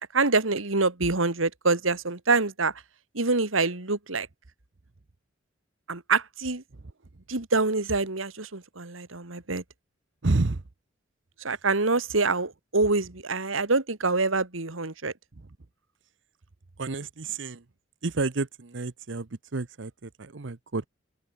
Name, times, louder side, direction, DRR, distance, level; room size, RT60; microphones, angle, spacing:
voice 1, 0.0-2.7 3.1-4.3 5.9-6.6 7.3-9.6 11.4-15.1, right 3 dB, 80° right, 2.2 m, -26 dB
voice 2, 10.2-10.6 15.4-15.5 16.8-17.6 18.0-20.9, right 3 dB, 65° right, 0.9 m, -30 dB
open air
head